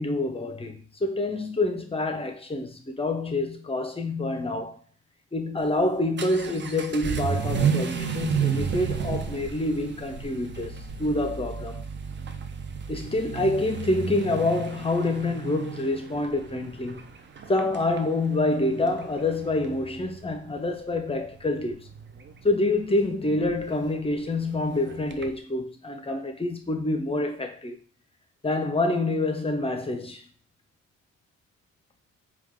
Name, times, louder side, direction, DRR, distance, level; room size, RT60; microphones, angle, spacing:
voice 1, 0.0-4.8 5.3-11.8 12.9-17.1 17.5-21.9 22.4-27.8 28.4-30.2, left 2 dB, 20° left, 0.8 m, -27 dB
Vehicle / Accelerating revving vroom, 5.6-25.4, right 7 dB, 40° right, 0.6 m, -33 dB
4.5 x 2.4 x 3.7 m
cardioid pair, 90°, 30 cm